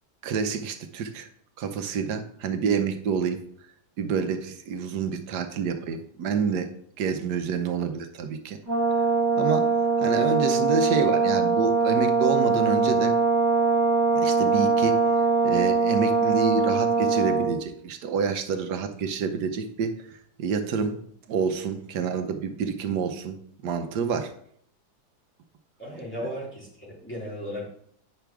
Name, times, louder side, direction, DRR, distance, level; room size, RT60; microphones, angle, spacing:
voice 1, 0.2-1.3 1.6-3.4 4.0-8.6 9.4-9.7 10.0-13.2 14.1-15.0 15.4-21.0 21.3-23.4 23.6-24.3, right 6 dB, 90° right, 7 dB, 1.4 m, -28 dB
Brass instrument, 8.7-17.6, right 4 dB, 15° right, 2.0 m, -22 dB
voice 2, 25.8-27.7, equal, 5° left, -7 dB, 3.2 m, -35 dB
9.5 x 6.0 x 3.4 m, 0.67 s
omnidirectional pair, 1.7 m